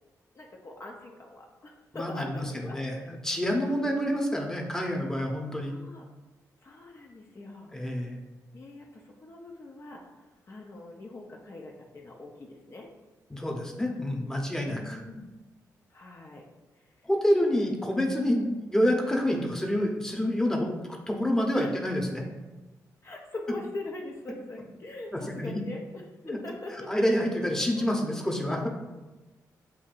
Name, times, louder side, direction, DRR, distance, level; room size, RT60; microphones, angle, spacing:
voice 1, 0.3-3.1 3.7-4.0 5.5-6.1 6.6-7.8 8.5-10.0 10.5-12.9 14.7-15.3 15.9-16.4 16.8-16.9 21.6-21.7 23.0-26.9 27.8-28.0, left 2 dB, 45° left, 0 dB, 0.6 m, -42 dB
voice 2, 1.9-5.7 7.7-8.2 13.3-15.0 17.0-22.2 25.1-25.6 26.2-26.4 26.9-28.7, equal, 10° left, 1 dB, 0.9 m, -28 dB
7.0 x 2.7 x 2.5 m, 1.1 s
cardioid pair, 65°, 7 cm